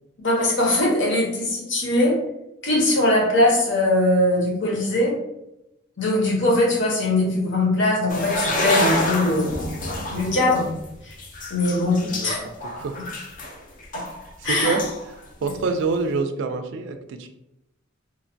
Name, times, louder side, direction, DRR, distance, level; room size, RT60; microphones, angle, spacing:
voice 1, 0.2-2.2 2.6-5.1 6.0-9.7 10.1-10.7 11.0-11.1 11.5-12.4 14.4-14.8 15.4-15.5, left 1 dB, 65° left, -1 dB, 0.8 m, -21 dB
sound 1, 8.1-15.1 15.5-15.7, left 1 dB, 40° left, 0.4 m, -28 dB
voice 2, 12.0-12.3 12.8-13.0 14.4-14.8 15.4-17.3, right 4 dB, 65° right, 7 dB, 0.3 m, -26 dB
3.1 x 2.1 x 2.5 m, 0.89 s
head